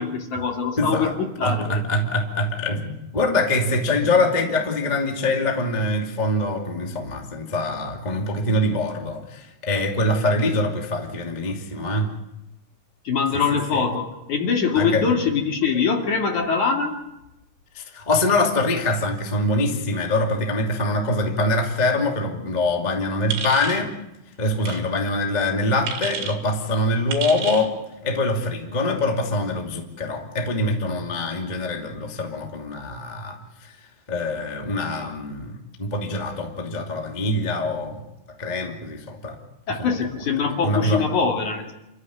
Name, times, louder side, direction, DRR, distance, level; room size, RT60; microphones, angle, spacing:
voice 1, 0.0-1.8 13.0-17.0 39.7-41.7, left 5 dB, 45° left, 2 dB, 3.2 m, -23 dB
voice 2, 0.8-1.1 1.4-12.1 13.3-13.9 14.7-15.1 17.7-23.9 24.4-27.7 28.0-33.7 34.1-38.0 38.4-39.4 39.8-40.0 40.6-41.1, left 2 dB, 20° left, 1 dB, 1.2 m, -24 dB
sound 1, 23.3-23.8 24.6-24.8 25.9-26.4 27.1-27.7, right 6 dB, 85° right, 5.3 m, -30 dB
29.0 x 14.5 x 9.5 m, 0.92 s
omnidirectional pair, 5.5 m